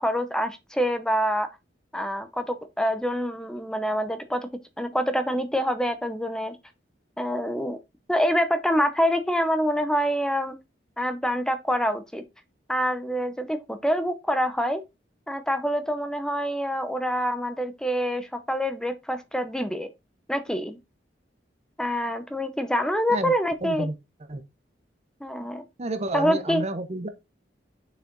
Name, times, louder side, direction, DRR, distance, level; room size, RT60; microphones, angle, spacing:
voice 1, 0.0-1.5 1.9-4.4 4.8-6.6 7.2-7.8 8.1-10.5 11.0-12.2 12.7-14.8 15.3-19.9 20.3-20.8 21.8-23.9 25.2-25.6 26.1-26.6, equal, 5° left, 0.8 m, -26 dB
voice 2, 23.6-23.9 24.3-24.4 25.8-27.1, right 2 dB, 35° right, 0.8 m, -30 dB
6.6 x 4.9 x 3.9 m
head